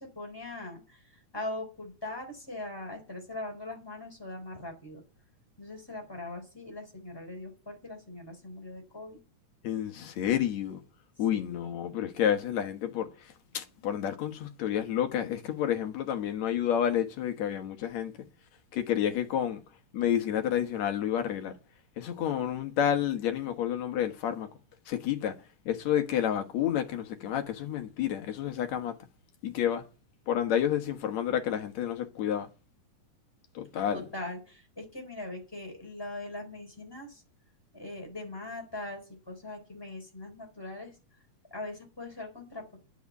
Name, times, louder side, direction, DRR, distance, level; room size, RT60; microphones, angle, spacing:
voice 1, 0.0-5.0 5.6-9.2 11.3-12.0 33.9-37.2 37.7-41.0 41.5-42.8, left 2 dB, 5° left, 3.8 m, -41 dB
voice 2, 9.6-10.8 11.2-13.1 13.5-18.1 18.7-19.6 19.9-21.6 22.0-24.5 24.9-25.4 25.7-28.9 29.4-29.8 30.3-32.5 33.6-34.1, left 10 dB, 65° left, 2.4 m, -29 dB
10.0 x 6.6 x 8.4 m
omnidirectional pair, 3.6 m